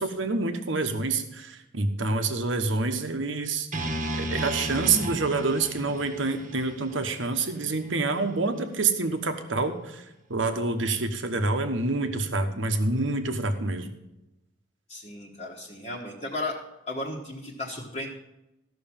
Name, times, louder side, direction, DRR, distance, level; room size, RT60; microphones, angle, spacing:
voice 1, 0.0-10.0 10.3-13.9, right 3 dB, 70° right, 7 dB, 1.2 m, -27 dB
sound 1, 3.7-7.9, right 1 dB, 40° right, 1.3 m, -34 dB
voice 2, 14.9-16.6 16.9-18.1, left 2 dB, 30° left, -4 dB, 1.3 m, -35 dB
14.0 x 6.2 x 7.2 m, 0.91 s
head